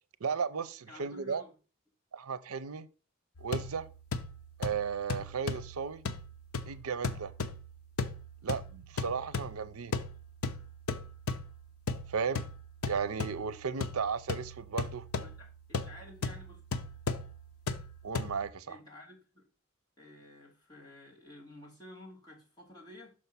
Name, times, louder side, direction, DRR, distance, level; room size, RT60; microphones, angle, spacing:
voice 1, 0.2-1.4 2.1-2.9 3.4-3.9 4.6-6.0 6.7-7.3 8.4-10.0 12.1-12.4 12.9-15.1 18.0-18.8, right 6 dB, 90° right, 0.6 m, -35 dB
voice 2, 0.9-1.5 15.2-16.6 18.7-19.5 20.0-23.1, left 1 dB, 20° left, 2.6 m, -52 dB
sound 1, 3.4-18.5, left 3 dB, 90° left, 0.7 m, -38 dB
6.4 x 4.6 x 5.5 m
head